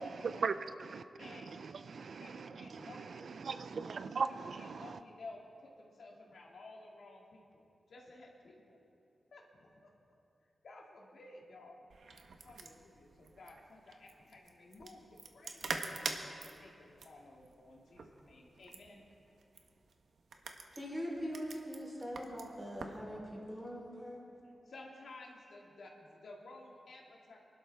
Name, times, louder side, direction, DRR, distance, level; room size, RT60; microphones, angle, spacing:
voice 1, 0.0-5.0, right 5 dB, 70° right, 12 dB, 0.4 m, -39 dB
voice 2, 1.2-1.5 1.9-3.4 4.2-8.8 9.3-9.9 10.6-11.8 12.1-12.2 12.4-15.8 16.4-19.0 24.6-27.4, left 2 dB, 75° left, -1 dB, 2.0 m, -54 dB
sound 1, 11.9-23.0, right 4 dB, 85° right, 1.0 m, -46 dB
voice 3, 20.7-24.2, equal, 10° right, -3 dB, 3.5 m, -42 dB
24.0 x 12.0 x 3.4 m, 2.6 s
wide cardioid pair, 135°, 0 cm